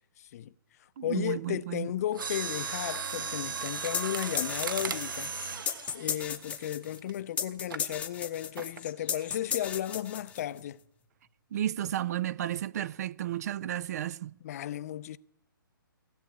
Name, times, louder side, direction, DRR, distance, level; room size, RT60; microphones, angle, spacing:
voice 1, 0.2-0.5 0.8-10.8 14.4-15.2, left 12 dB, 45° left, 0.6 m, -35 dB
voice 2, 1.0-1.9 11.5-14.3, right 12 dB, 45° right, 0.5 m, -32 dB
Mechanisms, 2.1-7.1 7.7-7.9 8.6-8.9 9.2-9.3, right 5 dB, 65° right, 1.2 m, -36 dB
sound 1, 3.9-10.6, left 8 dB, 10° left, 0.8 m, -35 dB
16.5 x 8.2 x 8.5 m
hypercardioid pair, 135°, 12 cm